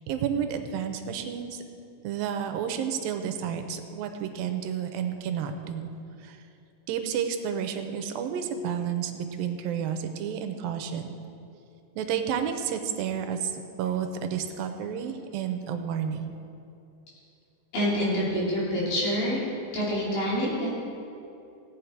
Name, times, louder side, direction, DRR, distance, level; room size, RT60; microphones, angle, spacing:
voice 1, 0.1-1.6 2.0-5.9 6.2-6.4 6.9-11.1 12.0-16.4, right 8 dB, 90° right, 6 dB, 2.5 m, -31 dB
voice 2, 17.7-19.4 19.7-20.7, equal, 75° left, -7 dB, 5.0 m, -26 dB
17.0 x 8.5 x 4.6 m, 2.7 s
omnidirectional pair, 4.1 m